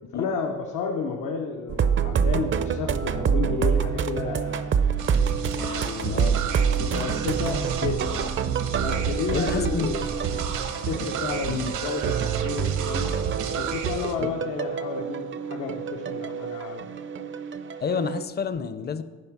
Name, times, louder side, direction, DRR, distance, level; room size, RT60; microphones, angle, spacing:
voice 1, 0.1-4.7 5.5-6.2 6.8-8.3 8.7-10.4 10.8-13.1 13.5-16.9, left 5 dB, 80° left, 1 dB, 0.9 m, -32 dB
sound 1, 1.7-18.2, right 7 dB, 40° right, 0.5 m, -27 dB
sound 2, 5.0-14.2, right 7 dB, 75° right, 1.0 m, -32 dB
voice 2, 6.0-6.6 9.3-9.9 11.5-11.7 14.2-14.3 17.8-19.0, left 6 dB, 35° left, 13 dB, 0.6 m, -29 dB
9.6 x 5.0 x 6.0 m, 1.5 s
cardioid pair, 90°, 30 cm